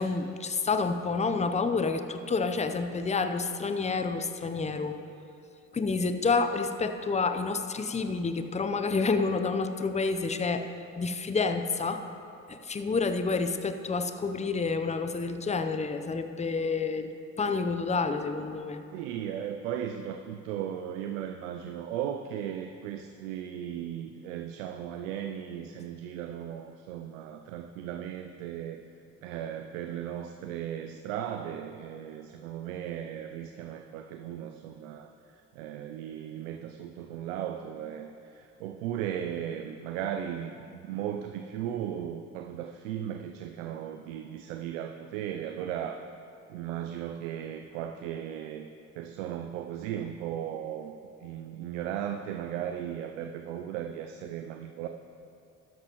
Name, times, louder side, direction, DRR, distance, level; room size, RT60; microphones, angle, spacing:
voice 1, 0.0-5.0 5.7-10.7 11.0-12.0 12.5-18.8, left 4 dB, 20° left, 8 dB, 0.7 m, -29 dB
voice 2, 18.9-28.8 29.2-35.1 35.5-46.1 46.5-48.7 49.0-50.9 51.2-54.9, right 10 dB, 85° right, 6 dB, 0.5 m, -36 dB
12.5 x 10.5 x 3.0 m, 2.6 s
hypercardioid pair, 50°, 38 cm